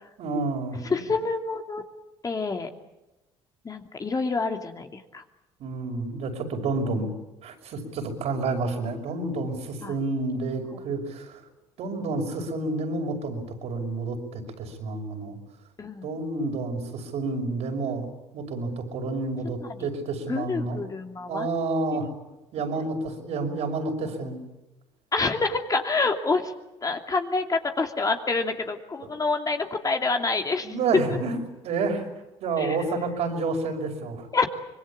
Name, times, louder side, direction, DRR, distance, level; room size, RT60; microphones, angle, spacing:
voice 1, 0.2-1.0 5.6-7.1 7.4-11.4 11.8-15.4 16.0-18.1 18.3-20.8 21.3-22.1 22.5-24.4 29.0-29.1 30.6-31.4 31.6-32.1 32.4-34.3, right 3 dB, 65° right, 3 dB, 6.0 m, -29 dB
voice 2, 0.8-1.8 2.2-2.7 3.6-5.2 9.8-9.9 15.8-16.1 19.4-19.8 20.3-21.5 22.0-22.1 22.8-22.9 25.1-26.5 26.8-30.7 31.1-31.2 32.6-32.8 34.3-34.5, left 3 dB, 30° left, 4 dB, 2.7 m, -27 dB
25.5 x 21.5 x 8.7 m, 0.99 s
supercardioid pair, 70°, 12 cm